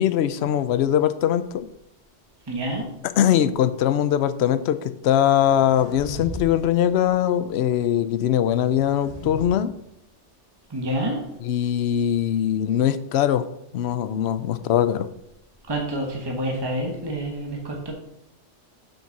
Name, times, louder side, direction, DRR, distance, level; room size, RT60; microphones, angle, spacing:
voice 1, 0.0-1.7 3.2-4.8 5.0-9.7 11.4-13.5 13.7-15.1, left 10 dB, 65° left, 13 dB, 0.8 m, -21 dB
voice 2, 2.5-2.9 10.7-11.2 15.7-17.9, right 1 dB, 20° right, 0 dB, 1.3 m, -28 dB
sound 1, 5.4-6.5 6.8-7.2 8.4-9.5, left 2 dB, 30° left, 2.0 m, -37 dB
7.5 x 5.6 x 5.8 m, 0.80 s
omnidirectional pair, 1.2 m